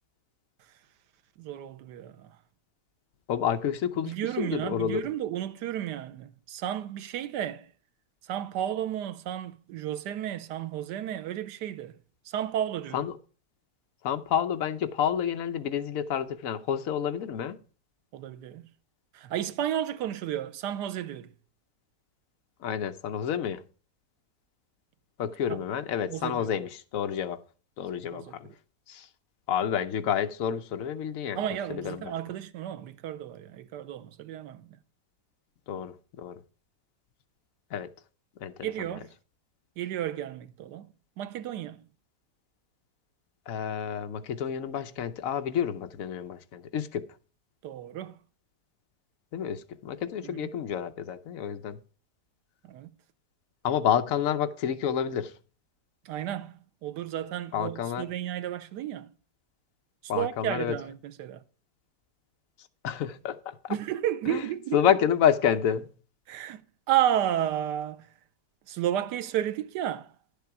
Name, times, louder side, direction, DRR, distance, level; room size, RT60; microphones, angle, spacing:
voice 1, 1.4-2.4 4.1-7.7 8.2-12.0 12.2-13.0 18.1-18.7 19.1-21.3 25.5-25.6 26.1-26.5 28.1-28.3 31.3-34.8 38.6-39.1 39.8-40.9 41.2-41.8 47.6-48.2 50.2-50.5 52.6-52.9 56.0-59.1 60.1-61.4 63.7-64.8 66.3-66.6 66.9-68.1 68.7-70.1, right 11 dB, 80° right, 1.3 m, -32 dB
voice 2, 3.3-5.1 12.9-13.2 14.0-17.6 22.6-23.6 25.2-27.4 27.8-28.5 28.9-29.1 29.5-31.4 31.7-32.1 35.7-36.4 37.7-37.9 38.4-38.9 43.5-47.1 49.3-51.8 53.6-55.3 57.5-58.1 60.1-60.8 62.8-63.7 64.3-64.4 64.7-65.9, left 8 dB, 60° left, 1.1 m, -29 dB
10.5 x 6.9 x 4.7 m
omnidirectional pair, 1.8 m